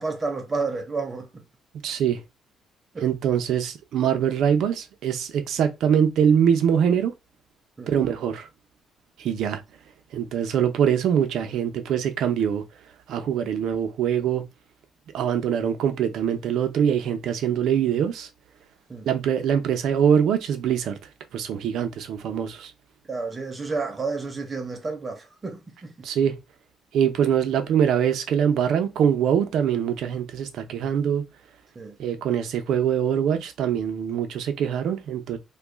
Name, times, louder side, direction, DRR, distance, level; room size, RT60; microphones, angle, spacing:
voice 1, 0.0-1.4 2.9-3.1 7.8-7.9 13.4-13.5 18.9-19.1 23.1-26.1 31.8-32.0, right 4 dB, 25° right, 0.7 m, -31 dB
voice 2, 1.8-2.2 3.0-7.1 7.9-8.5 9.2-9.6 10.1-12.6 13.1-14.4 15.1-18.3 19.1-21.0 21.3-22.7 26.0-26.4 26.9-31.2 32.0-35.4, right 8 dB, 75° right, 0.7 m, -23 dB
3.0 x 2.4 x 3.5 m
cardioid pair, 125°, 0 cm